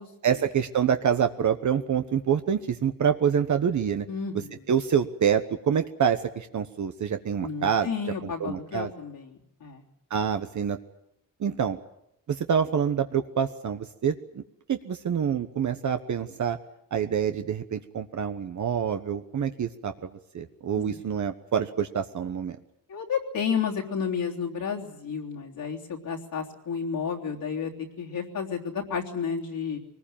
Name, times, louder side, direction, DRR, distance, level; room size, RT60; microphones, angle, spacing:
voice 1, 0.2-4.1 4.7-7.9 8.2-8.9 10.1-10.8 11.4-11.8 12.3-14.4 14.7-16.6 16.9-22.6, right 8 dB, 55° right, 7 dB, 1.2 m, -26 dB
voice 2, 4.1-4.6 7.4-9.8 20.8-21.0 22.9-27.7 28.0-29.8, left 6 dB, 75° left, -2 dB, 3.5 m, -31 dB
23.5 x 20.0 x 8.9 m, 0.78 s
cardioid pair, 120°, 34 cm